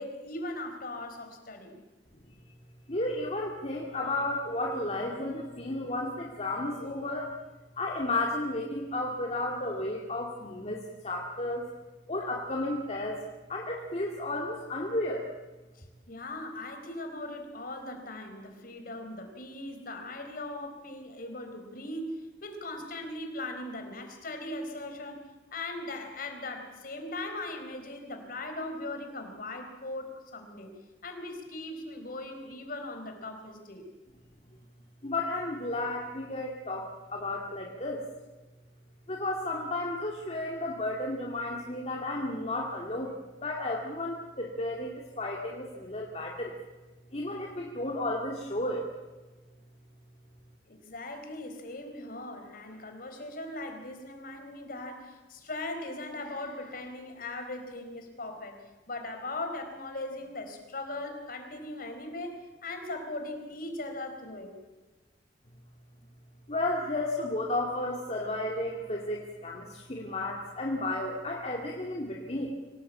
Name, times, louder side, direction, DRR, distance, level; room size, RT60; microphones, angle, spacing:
voice 1, 0.0-1.8 15.7-33.9 50.7-58.6 58.9-62.3 62.6-64.5, left 2 dB, 50° left, 5 dB, 4.4 m, -39 dB
voice 2, 2.9-7.3 7.8-10.8 11.0-11.7 12.1-13.2 13.5-15.3 35.0-38.0 39.1-43.1 43.4-46.5 47.1-48.9 66.5-72.5, left 2 dB, 35° left, -1 dB, 2.4 m, -33 dB
25.5 x 18.0 x 8.6 m, 1.2 s
head